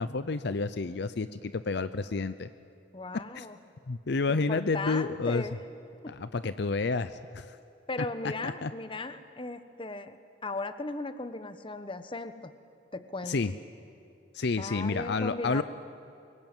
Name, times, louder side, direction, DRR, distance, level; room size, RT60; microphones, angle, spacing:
voice 1, 0.0-2.5 3.3-3.5 3.9-5.4 6.1-7.6 8.4-8.7 13.3-13.5 14.3-15.6, left 3 dB, 60° left, 13 dB, 0.6 m, -30 dB
voice 2, 2.9-3.6 4.3-5.6 6.0-6.1 7.9-10.2 10.4-12.5 12.9-13.4 14.6-15.6, left 2 dB, 25° left, 10 dB, 1.1 m, -37 dB
24.5 x 22.0 x 9.0 m, 2.8 s
head